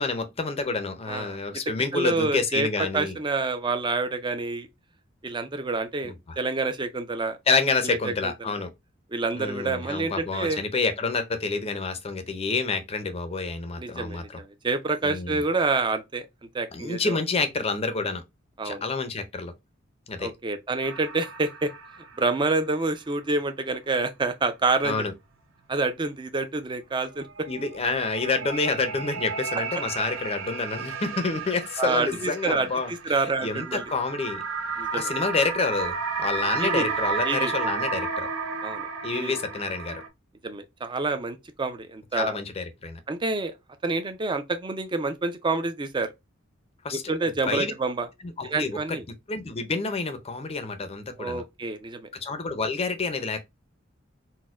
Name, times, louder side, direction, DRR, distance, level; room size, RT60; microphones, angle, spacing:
voice 1, 0.0-3.1 6.0-6.1 7.5-8.7 9.3-14.4 15.0-15.4 16.7-18.2 18.6-19.5 20.1-20.3 24.8-25.1 27.5-34.4 34.9-38.3 39.0-40.0 42.1-43.0 46.8-47.0 47.5-47.7 48.2-49.0 49.3-51.4 52.1-53.4, left 4 dB, 30° left, 0.5 m, -28 dB
voice 2, 1.1-1.4 1.9-4.7 5.2-7.4 7.8-8.5 9.1-10.6 13.8-16.3 16.5-17.2 18.6-18.8 20.2-21.7 22.2-25.0 25.7-27.5 31.8-33.8 34.8-35.1 36.6-36.9 37.3-37.5 38.6-39.3 40.4-42.4 43.1-43.5 43.8-46.1 46.9-48.1 48.4-49.0 51.2-52.1, right 3 dB, 25° right, 0.4 m, -28 dB
sound 1, 20.8-22.4 22.7-22.8 27.2-40.1, right 4 dB, 75° right, 0.6 m, -32 dB
4.1 x 2.1 x 2.3 m
head